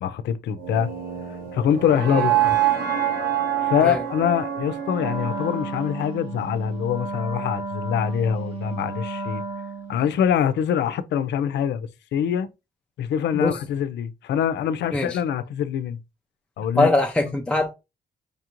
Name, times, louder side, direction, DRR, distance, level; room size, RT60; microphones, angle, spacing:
voice 1, 0.0-0.9 1.5-2.5 3.6-9.4 9.9-12.5 13.0-16.0 16.6-16.9, left 9 dB, 85° left, 0.5 m, -24 dB
sound 1, 0.6-6.7, right 11 dB, 55° right, 1.1 m, -26 dB
Wind instrument woodwind instrument, 5.0-10.1, right 3 dB, 30° right, 1.1 m, -33 dB
voice 2, 16.7-17.7, left 2 dB, 5° left, 0.4 m, -22 dB
5.1 x 2.5 x 2.9 m
wide cardioid pair, 155°, 18 cm